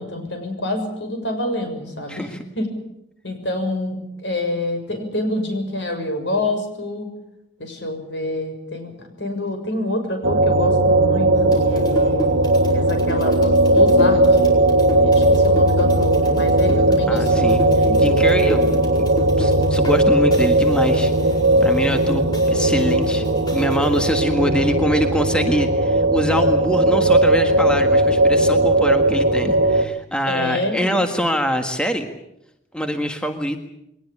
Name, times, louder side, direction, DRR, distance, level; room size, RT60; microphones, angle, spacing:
voice 1, 0.0-2.3 2.6-2.7 3.2-7.1 7.6-11.3 11.6-12.3 12.7-14.4 15.0-18.1 30.3-31.1, left 1 dB, 70° left, 6 dB, 6.7 m, -27 dB
voice 2, 2.1-2.4 17.1-17.6 18.0-19.1 19.4-21.1 21.6-23.2 23.5-32.1 32.7-33.6, equal, 5° left, 5 dB, 1.6 m, -24 dB
sound 1, 10.2-29.8, right 1 dB, 90° right, 1.6 m, -17 dB
sound 2, 11.3-20.0 20.3-24.1, left 2 dB, 20° left, 5.1 m, -34 dB
22.5 x 19.5 x 8.7 m, 0.81 s
head